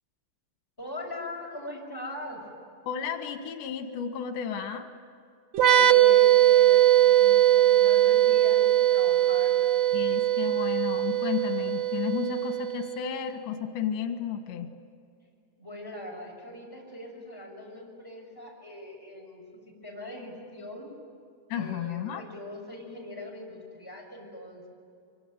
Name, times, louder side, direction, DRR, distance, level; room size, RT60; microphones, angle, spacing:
voice 1, 0.8-2.4 5.7-9.6 15.6-20.9 21.5-24.7, left 1 dB, 5° left, -1 dB, 6.0 m, -41 dB
voice 2, 2.9-4.9 9.9-14.7 21.5-22.2, left 8 dB, 85° left, 5 dB, 3.7 m, -32 dB
sound 1, 5.5-13.0, right 13 dB, 85° right, 1.4 m, -21 dB
25.0 x 24.5 x 9.3 m, 2.3 s
omnidirectional pair, 4.8 m